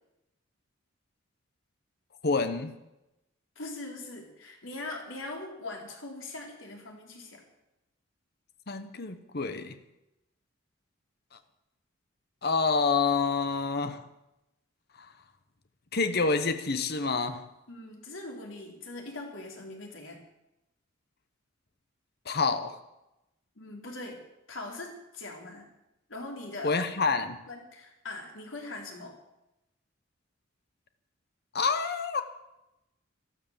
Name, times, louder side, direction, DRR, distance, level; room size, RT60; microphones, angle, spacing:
voice 1, 2.2-2.7 8.7-9.8 11.3-11.4 12.4-14.0 15.0-15.1 15.9-17.4 22.2-22.8 26.6-27.4 31.5-32.2, left 4 dB, 55° left, 9 dB, 1.1 m, -28 dB
voice 2, 3.6-7.4 17.7-20.2 23.6-24.2 24.5-25.7 26.1-26.8 27.1-27.2 27.5-29.2, left 2 dB, 85° left, 1 dB, 3.9 m, -41 dB
13.0 x 12.5 x 7.4 m, 0.93 s
head